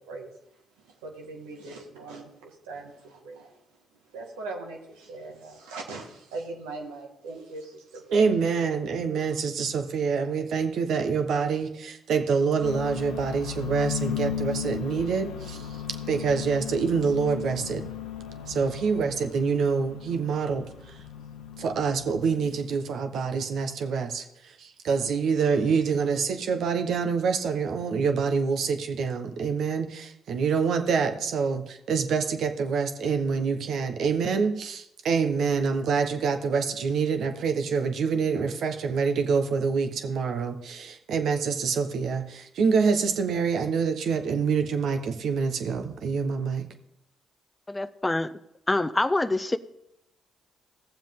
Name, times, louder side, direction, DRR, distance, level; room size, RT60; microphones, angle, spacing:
voice 1, 0.8-3.5 4.1-8.2, right 3 dB, 90° right, 1 dB, 1.6 m, -40 dB
voice 2, 8.1-15.6 16.1-17.8 18.5-20.6 21.6-24.2 24.6-46.7, right 5 dB, 70° right, 7 dB, 1.1 m, -26 dB
sound 1, 12.6-22.9, left 9 dB, 85° left, 0.8 m, -36 dB
voice 3, 47.7-48.3 48.7-49.6, left 2 dB, 20° left, 13 dB, 0.5 m, -25 dB
17.0 x 7.3 x 3.7 m, 0.83 s
supercardioid pair, 55°, 0 cm